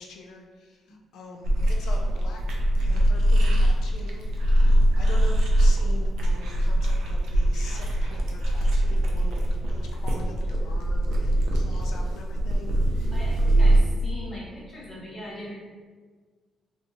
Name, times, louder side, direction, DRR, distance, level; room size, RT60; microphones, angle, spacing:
voice 1, 0.0-4.5 5.0-13.2, left 3 dB, 75° left, 2 dB, 0.4 m, -43 dB
sound 1, 1.4-13.8, right 1 dB, 80° right, 0.4 m, -22 dB
voice 2, 13.1-15.5, equal, 35° left, -5 dB, 1.1 m, -40 dB
2.8 x 2.2 x 2.7 m, 1.5 s
cardioid pair, 90°, 0 cm